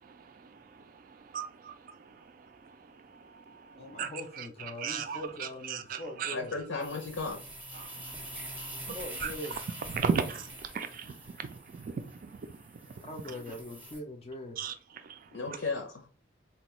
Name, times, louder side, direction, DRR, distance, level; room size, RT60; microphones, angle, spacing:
voice 1, 0.0-6.4 7.7-9.6 9.9-13.5 14.6-15.6, right 6 dB, 45° right, 0.3 m, -38 dB
voice 2, 3.8-6.5 8.9-9.6 13.0-14.6, left 1 dB, 30° left, 0.4 m, -42 dB
voice 3, 6.3-7.4 15.3-16.1, left 3 dB, 85° left, 0.6 m, -35 dB
sound 1, 6.8-14.0, right 1 dB, 10° right, 0.6 m, -45 dB
4.2 x 2.2 x 2.9 m
head